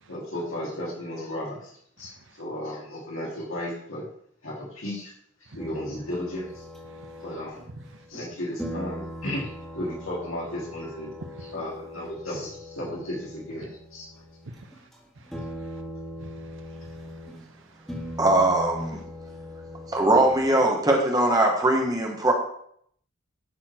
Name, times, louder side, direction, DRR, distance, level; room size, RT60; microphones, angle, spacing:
voice 1, 0.1-1.7 2.0-4.0 4.4-5.1 5.5-6.6 7.2-7.6 8.1-9.5 9.7-11.1 11.5-14.1, left 1 dB, 65° left, -4 dB, 3.2 m, -34 dB
voice 2, 2.0-2.4 5.5-5.6 6.9-7.2 7.7-8.0 11.3-11.4 14.4-14.9 15.2-15.8 16.2-18.2, right 2 dB, 60° right, 6 dB, 0.9 m, -49 dB
sound 1, 5.6-8.3 8.6-14.5 14.7-15.0 15.3-17.4 17.9-20.8, equal, ahead, 2.0 m, -40 dB
voice 3, 18.2-19.0 19.9-22.3, right 2 dB, 20° right, 0 dB, 1.4 m, -21 dB
12.0 x 4.4 x 4.5 m, 0.66 s
head